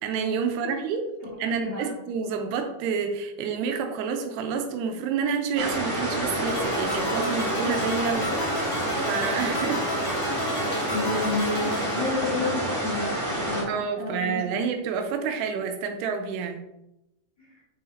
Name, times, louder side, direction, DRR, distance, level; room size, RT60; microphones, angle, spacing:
voice 1, 0.0-1.1 1.4-8.3 9.1-9.9 10.5-10.9 13.7-16.6, right 6 dB, 85° right, 5 dB, 2.7 m, -29 dB
voice 2, 1.4-1.9 8.1-8.7 10.9-14.4 17.4-17.6, left 3 dB, 45° left, -8 dB, 1.5 m, -31 dB
sound 1, 5.6-13.6, right 1 dB, 40° right, 1.7 m, -28 dB
sound 2, 6.5-12.8, left 2 dB, 90° left, 1.3 m, -34 dB
6.3 x 5.7 x 2.6 m, 0.90 s
omnidirectional pair, 4.8 m